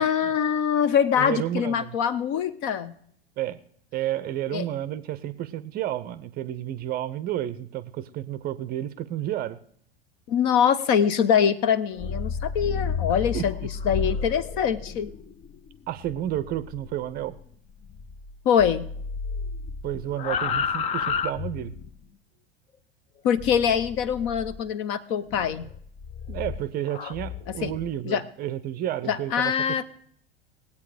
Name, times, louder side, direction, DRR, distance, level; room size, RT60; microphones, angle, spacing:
voice 1, 0.0-2.9 4.5-4.7 10.3-13.6 13.8-15.1 18.4-18.9 23.2-25.6 27.6-27.7 28.0-28.2 29.1-29.8, left 8 dB, 40° left, 15 dB, 0.9 m, -23 dB
voice 2, 1.2-1.9 3.4-3.6 3.9-9.6 13.3-13.5 15.9-17.4 19.8-21.7 26.3-29.8, right 12 dB, 30° right, 15 dB, 0.7 m, -31 dB
sound 1, 11.8-18.3 18.6-22.0 23.4-24.6 25.3-27.9, left 6 dB, 20° left, 0.5 m, -32 dB
19.5 x 8.4 x 4.9 m, 0.65 s
figure-of-eight pair, 85°, 31 cm